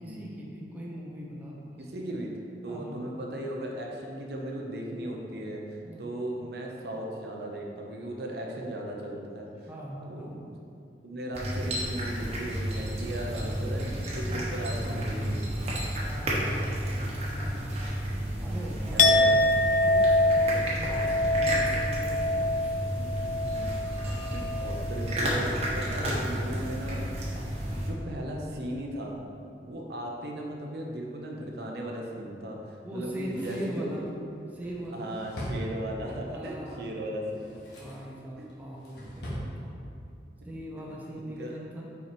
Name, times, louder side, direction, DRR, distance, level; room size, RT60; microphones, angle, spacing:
voice 1, 0.0-1.8 2.7-3.0 5.8-6.1 9.7-10.4 16.0-17.9 18.4-19.4 19.8-22.7 24.0-24.4 32.8-34.1 34.5-35.2 36.3-37.2 37.8-39.8 40.4-41.8, equal, 10° right, -4 dB, 0.8 m, -41 dB
voice 2, 1.8-5.6 6.0-9.5 10.1-10.6 11.0-15.4 17.8-19.3 23.0-23.7 24.3-27.3 27.8-29.2 29.6-33.9 34.9-37.6 37.9-38.0 38.4-38.5 39.5-39.7 40.8-41.5, right 1 dB, 60° right, 0 dB, 0.8 m, -37 dB
sound 1, 11.3-27.9, right 1 dB, 35° right, 1.1 m, -31 dB
Chink clink, 19.0-24.9 25.2-25.6, left 2 dB, 45° left, 0.3 m, -25 dB
Drawer open or close, 33.0-36.3 37.2-38.1 38.5-39.5 39.8-39.9, equal, 70° left, 1.5 m, -41 dB
5.8 x 4.6 x 4.5 m, 2.5 s
head